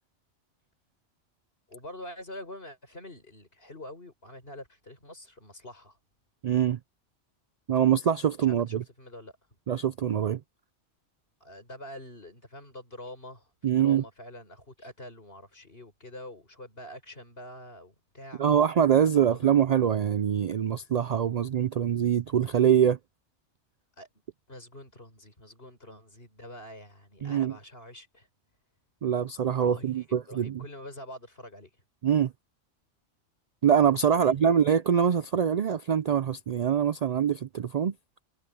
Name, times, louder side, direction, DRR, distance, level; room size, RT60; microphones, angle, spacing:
voice 1, 1.7-6.0 8.4-9.3 11.4-18.4 19.0-19.6 24.0-24.1 24.5-28.3 29.6-31.7 34.1-34.5, left 1 dB, 55° left, 6.3 m, -45 dB
voice 2, 6.4-6.8 7.7-8.8 9.7-10.4 13.6-14.0 18.4-23.0 27.2-27.5 29.0-30.6 32.0-32.3 33.6-37.9, right 8 dB, 60° right, 0.4 m, -24 dB
omnidirectional pair, 1.2 m